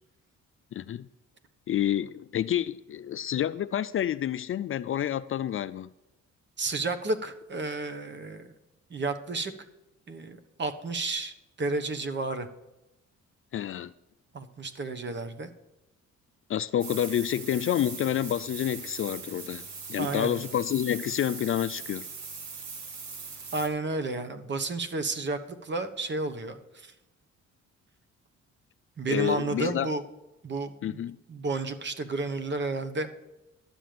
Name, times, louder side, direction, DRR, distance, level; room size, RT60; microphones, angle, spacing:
voice 1, 0.7-1.1 1.7-5.9 13.5-13.9 16.5-19.6 19.9-22.1 29.1-29.9 30.8-31.2, left 10 dB, 45° left, 0.4 m, -28 dB
voice 2, 6.6-8.5 8.9-9.5 10.1-12.5 14.3-15.5 20.0-20.4 23.5-26.9 29.0-30.0 30.4-31.0 31.3-33.1, right 3 dB, 35° right, 1.2 m, -32 dB
sound 1, 16.8-23.7, right 4 dB, 65° right, 1.9 m, -41 dB
12.0 x 7.6 x 5.1 m
cardioid pair, 90°, 30 cm